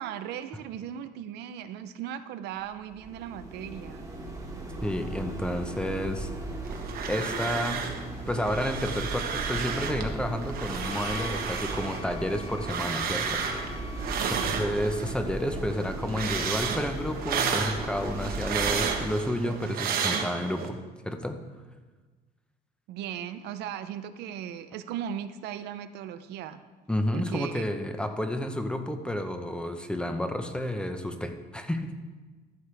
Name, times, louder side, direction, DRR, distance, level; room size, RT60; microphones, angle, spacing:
voice 1, 0.0-4.1 14.2-14.6 22.9-26.6 27.1-27.6, right 9 dB, 80° right, 11 dB, 0.5 m, -37 dB
sound 1, 2.7-19.1, right 2 dB, 20° right, 1.6 m, -37 dB
voice 2, 4.8-6.3 7.1-7.9 8.3-13.8 14.4-20.8 21.0-21.4 26.9-31.9, equal, 5° left, 6 dB, 0.8 m, -31 dB
sound 2, 6.7-8.0 8.3-10.1 10.4-15.2 15.5-20.7, right 6 dB, 60° right, 1.1 m, -32 dB
Wind instrument woodwind instrument, 10.8-14.4, left 5 dB, 35° left, 0.6 m, -44 dB
13.5 x 6.5 x 3.3 m, 1.3 s
cardioid pair, 110°, 17 cm